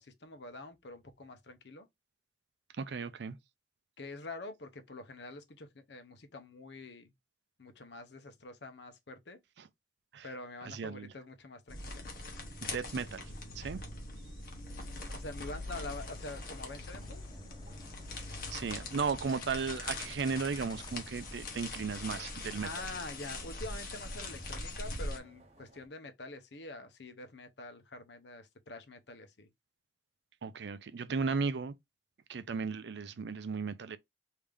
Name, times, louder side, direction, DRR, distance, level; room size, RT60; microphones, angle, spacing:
voice 1, 0.0-1.9 4.0-7.1 7.6-9.4 10.2-12.0 15.1-17.2 22.6-29.5, left 2 dB, 75° left, 0.8 m, -46 dB
voice 2, 2.8-3.4 9.6-9.7 10.1-10.3 10.6-11.1 12.6-13.8 18.5-22.7 30.4-31.7 32.3-34.0, right 5 dB, 75° right, 0.4 m, -35 dB
sound 1, 11.7-25.2, left 2 dB, 50° left, 1.0 m, -42 dB
sound 2, 14.9-25.9, right 1 dB, 35° right, 0.8 m, -60 dB
sound 3, 15.6-21.1, left 5 dB, 25° left, 0.3 m, -55 dB
3.4 x 2.8 x 3.5 m
head